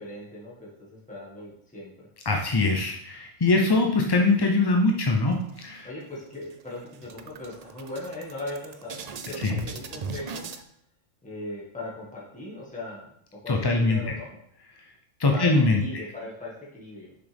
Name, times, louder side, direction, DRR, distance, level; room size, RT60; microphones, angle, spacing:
voice 1, 0.0-2.1 5.8-10.5 11.2-13.1 13.4-14.4 15.3-17.1, left 2 dB, 5° left, -6 dB, 1.7 m, -39 dB
voice 2, 2.3-5.9 9.4-9.6 13.5-14.0 15.2-16.0, left 3 dB, 30° left, 2 dB, 0.4 m, -22 dB
sound 1, 5.3-6.0 6.4-6.5 6.8-10.6, right 5 dB, 85° right, 0.3 m, -38 dB
6.6 x 6.0 x 3.5 m, 0.71 s
omnidirectional pair, 1.3 m